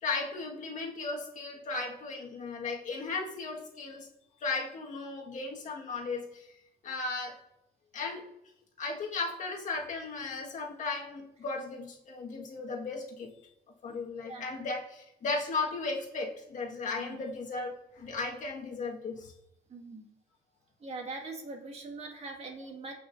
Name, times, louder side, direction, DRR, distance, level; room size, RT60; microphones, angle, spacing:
voice 1, 0.0-4.1 4.4-6.5 6.8-7.4 7.9-8.2 8.8-13.3 13.8-19.3, left 3 dB, 50° left, 0 dB, 1.7 m, -36 dB
voice 2, 14.2-14.7 17.0-17.2 19.7-20.1 20.8-23.0, right 3 dB, 40° right, 2 dB, 2.0 m, -42 dB
15.0 x 5.8 x 2.7 m, 0.83 s
cardioid pair, 110°, 17 cm